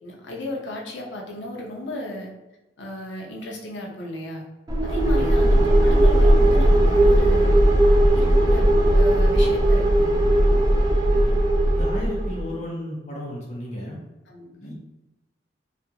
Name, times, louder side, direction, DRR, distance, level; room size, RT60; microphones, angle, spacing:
voice 1, 0.0-2.3 2.8-4.5 4.8-7.6 8.1-10.2 14.3-14.7, left 1 dB, 80° left, -1 dB, 0.6 m, -34 dB
sound 1, 4.7-12.4, right 1 dB, 20° right, 0.3 m, -17 dB
voice 2, 11.7-14.0 14.6-14.7, equal, 40° left, -4 dB, 0.7 m, -34 dB
2.4 x 2.3 x 2.8 m, 0.98 s
head